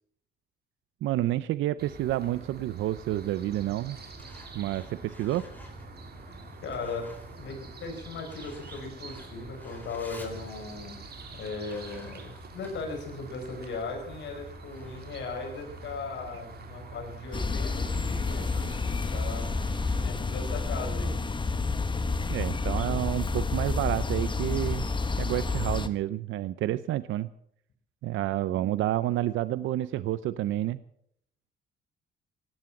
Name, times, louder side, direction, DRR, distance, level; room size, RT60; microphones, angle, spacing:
voice 1, 1.0-4.0 4.5-5.4 22.3-24.9 25.2-27.3 28.0-30.8, right 14 dB, 85° right, 15 dB, 0.6 m, -29 dB
bird chirps, 1.8-20.0, right 5 dB, 55° right, 3.2 m, -47 dB
Truck, 3.0-17.5, left 1 dB, 10° left, 4.0 m, -49 dB
voice 2, 6.6-7.1 7.4-11.0 11.4-19.5 20.0-21.2, left 4 dB, 70° left, 2 dB, 5.1 m, -38 dB
sound 1, 17.3-25.9, left 3 dB, 25° left, 1.3 m, -29 dB
17.0 x 11.5 x 7.2 m, 0.69 s
cardioid pair, 90°, 20 cm